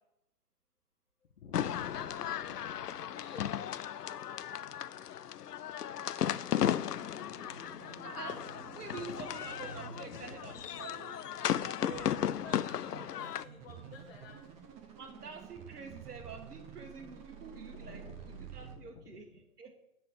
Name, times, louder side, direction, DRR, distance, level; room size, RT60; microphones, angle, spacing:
voice 1, 1.4-3.6 9.1-9.3 9.7-10.6 12.2-14.5 17.7-19.4, left 6 dB, 45° left, 0 dB, 1.3 m, -51 dB
sound 1, 1.5-13.4, left 10 dB, 85° left, 0.5 m, -35 dB
sound 2, 6.8-16.9, right 6 dB, 50° right, 0.9 m, -55 dB
voice 2, 8.0-10.9 11.7-12.2 15.0-19.7, right 5 dB, 80° right, 5 dB, 1.4 m, -47 dB
sound 3, 13.6-18.8, right 9 dB, 15° right, 0.9 m, -49 dB
9.5 x 4.3 x 6.9 m, 0.86 s
hypercardioid pair, 140°, 46 cm